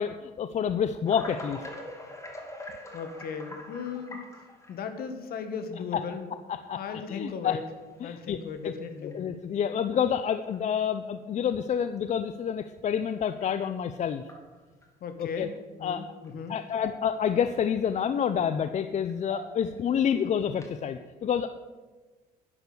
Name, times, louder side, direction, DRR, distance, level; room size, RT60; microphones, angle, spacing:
voice 1, 0.0-1.6 5.9-6.0 6.7-7.6 8.0-8.4 8.6-8.7 9.0-14.2 15.2-15.5 15.8-16.0 16.5-21.5, left 8 dB, 45° left, 10 dB, 0.6 m, -28 dB
sound 1, 1.1-4.9 5.7-5.8 6.8-6.9 7.7-8.0 8.4-8.5 9.0-9.1 10.5-10.6 13.4-13.5 14.2-14.9 16.2-16.3 16.7-17.3 17.7-17.8 19.1-19.8 20.5-20.9, equal, 15° left, 2.6 m, -43 dB
voice 2, 2.9-4.4 4.7-6.3 6.7-7.6 8.0-9.2 15.0-15.5 15.8-16.6, left 5 dB, 65° left, 8 dB, 1.8 m, -36 dB
11.0 x 10.0 x 6.9 m, 1.3 s
cardioid pair, 110°, 17 cm